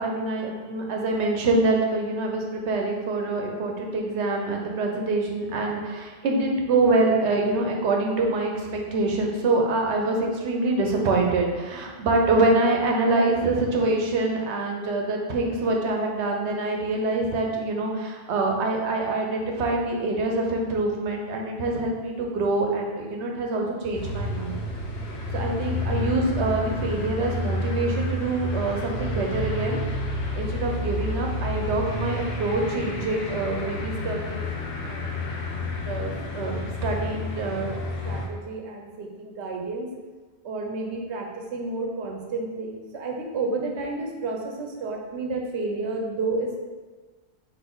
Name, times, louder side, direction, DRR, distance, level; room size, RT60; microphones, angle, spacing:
voice 1, 0.0-24.6 25.3-29.8 30.3-34.5 34.8-35.5 35.8-37.7 38.0-39.9 40.4-41.3 41.5-46.6, right 2 dB, 85° right, 1 dB, 1.0 m, -26 dB
sound 1, 23.9-38.3, left 1 dB, 70° left, 0.9 m, -30 dB
4.0 x 2.9 x 3.7 m, 1.4 s
omnidirectional pair, 1.1 m